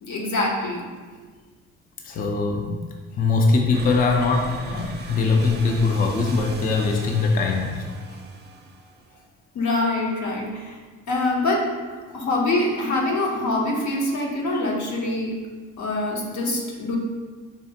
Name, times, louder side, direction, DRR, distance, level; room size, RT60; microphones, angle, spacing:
voice 1, 0.0-0.8 9.5-10.8 11.1-11.6 12.1-15.3 15.8-17.0, left 2 dB, 70° left, -1 dB, 0.8 m, -24 dB
voice 2, 2.0-2.8 3.2-7.8, left 4 dB, 30° left, 1 dB, 0.4 m, -21 dB
sound 1, 3.7-9.2, right 3 dB, 35° right, 0.5 m, -39 dB
4.2 x 2.4 x 2.7 m, 1.4 s
cardioid pair, 90°, 30 cm